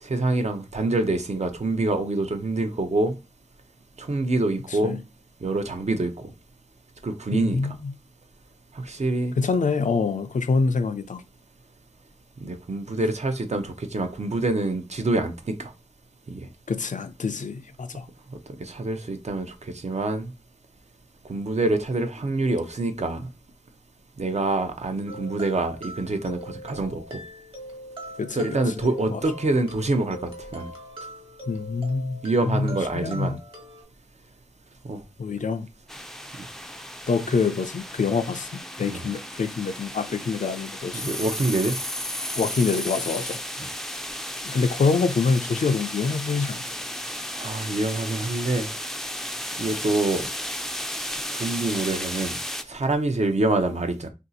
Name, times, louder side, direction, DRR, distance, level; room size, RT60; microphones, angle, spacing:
voice 1, 0.0-3.2 4.0-5.0 5.4-6.3 7.0-7.6 8.7-9.3 12.4-15.7 16.3-16.5 18.6-20.3 21.3-23.3 24.2-27.2 28.3-30.7 32.2-33.4 34.8-35.0 37.3-37.4 38.9-39.0 40.9-41.8 43.6-43.7 47.4-48.7 49.6-50.3 51.3-52.3 52.7-54.1, right 2 dB, 60° right, 0.6 m, -26 dB
voice 2, 7.3-7.9 9.4-11.2 16.7-18.1 28.2-28.6 29.1-29.2 31.5-33.4 35.2-35.7 37.1-41.1 42.3-43.4 44.4-46.6, left 4 dB, 80° left, 0.4 m, -26 dB
sound 1, 25.1-33.8, equal, 45° right, 1.2 m, -41 dB
sound 2, 35.9-52.6, equal, 5° left, 0.3 m, -34 dB
2.7 x 2.4 x 3.9 m
wide cardioid pair, 50°, 13 cm